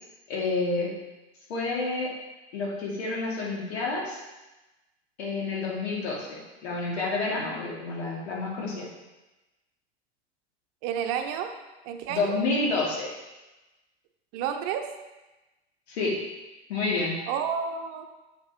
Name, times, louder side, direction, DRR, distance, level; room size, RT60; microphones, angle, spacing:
voice 1, 0.3-0.9 1.5-2.1 2.5-4.2 5.2-8.9 12.1-13.1 15.9-16.1 16.7-17.2, left 3 dB, 70° left, -4 dB, 2.4 m, -29 dB
voice 2, 10.8-11.5 11.8-12.4 14.3-14.8 17.3-18.1, right 8 dB, 50° right, 6 dB, 0.8 m, -30 dB
7.3 x 5.2 x 3.7 m, 1.1 s
hypercardioid pair, 85°, 33 cm